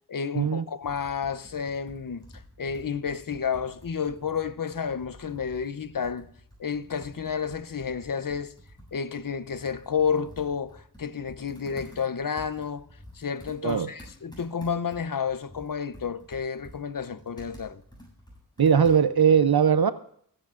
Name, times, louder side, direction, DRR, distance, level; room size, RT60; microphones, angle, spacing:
voice 1, 0.1-2.2 2.6-6.3 6.6-8.5 8.9-12.9 13.1-17.8, left 6 dB, 60° left, 0.7 m, -31 dB
Computer keyboard, 0.8-19.3, equal, 10° left, 7.9 m, -50 dB
voice 2, 18.6-19.9, right 7 dB, 70° right, 0.6 m, -20 dB
29.5 x 11.0 x 2.5 m
wide cardioid pair, 50°, 39 cm